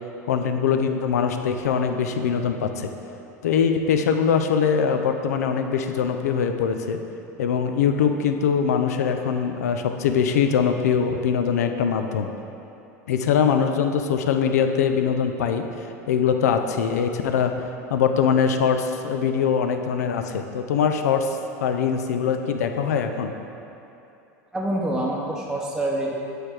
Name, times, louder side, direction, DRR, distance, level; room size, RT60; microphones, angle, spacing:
voice 1, 0.3-2.9 3.4-7.0 7.4-12.3 13.1-15.6 16.1-17.5 17.9-23.3, left 7 dB, 80° left, 6 dB, 0.4 m, -22 dB
voice 2, 24.5-26.1, right 1 dB, 5° right, -4 dB, 0.7 m, -26 dB
8.0 x 3.3 x 4.4 m, 2.8 s
hypercardioid pair, 95°, 8 cm